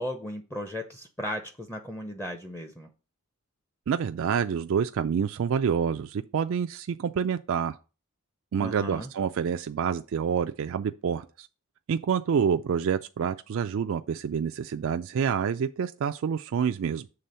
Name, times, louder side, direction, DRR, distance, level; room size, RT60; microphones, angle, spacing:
voice 1, 0.0-2.9 8.6-9.1, equal, 10° left, 0.6 m, -36 dB
voice 2, 3.9-7.8 8.5-11.5 11.9-17.1, right 7 dB, 60° right, 0.3 m, -27 dB
6.9 x 3.3 x 5.5 m
head